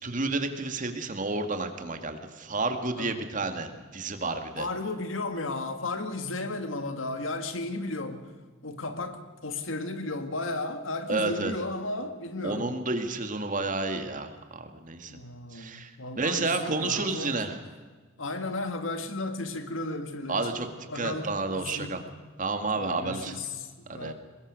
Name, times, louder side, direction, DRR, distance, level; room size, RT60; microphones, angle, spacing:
voice 1, 0.0-4.7 11.1-11.5 12.4-15.2 15.5-15.9 16.2-17.6 20.3-20.7 20.9-22.0 22.4-23.5 23.9-24.1, right 3 dB, 40° right, 2.2 m, -30 dB
voice 2, 4.6-8.3 8.6-12.8 15.1-17.4 18.2-20.6 20.9-22.0 22.8-24.1, left 2 dB, 75° left, 2.1 m, -34 dB
24.0 x 20.5 x 6.4 m
head